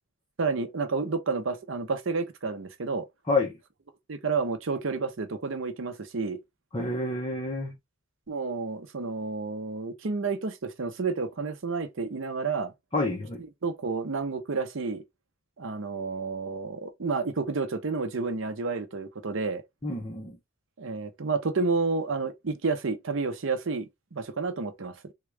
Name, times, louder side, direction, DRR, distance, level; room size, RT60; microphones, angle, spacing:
voice 1, 0.4-3.1 4.1-6.4 8.3-12.7 13.6-15.0 15.6-19.6 20.8-25.0, right 4 dB, 60° right, 0.6 m, -30 dB
voice 2, 6.7-7.8 12.9-13.4 19.8-20.4, left 2 dB, 25° left, 0.7 m, -28 dB
3.5 x 2.4 x 3.2 m
head